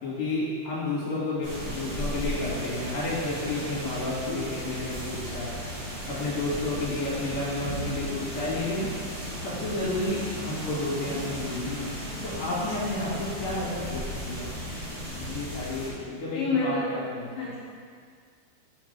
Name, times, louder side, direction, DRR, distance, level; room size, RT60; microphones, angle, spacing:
voice 1, 0.0-5.5 6.1-8.9 9.4-11.9 12.2-14.5 15.0-17.5, left 2 dB, 50° left, -7 dB, 2.8 m, -31 dB
sound 1, 1.4-15.9, equal, 40° right, 2.2 m, -35 dB
voice 2, 12.2-12.5 16.3-16.9 17.3-17.6, left 3 dB, 75° left, -6 dB, 2.3 m, -29 dB
7.3 x 5.8 x 3.4 m, 2.1 s
omnidirectional pair, 4.4 m